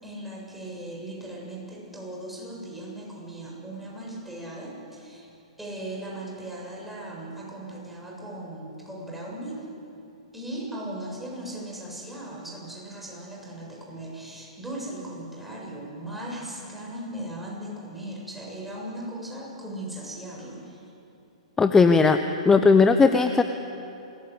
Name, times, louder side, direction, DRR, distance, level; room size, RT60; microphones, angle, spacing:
voice 1, 0.0-5.3 5.6-9.6 10.3-20.8, right 1 dB, 5° right, -3 dB, 7.5 m, -38 dB
voice 2, 21.6-23.4, left 4 dB, 10° left, 8 dB, 1.0 m, -18 dB
27.0 x 21.0 x 8.4 m, 2.8 s
figure-of-eight pair, 115°, 3 cm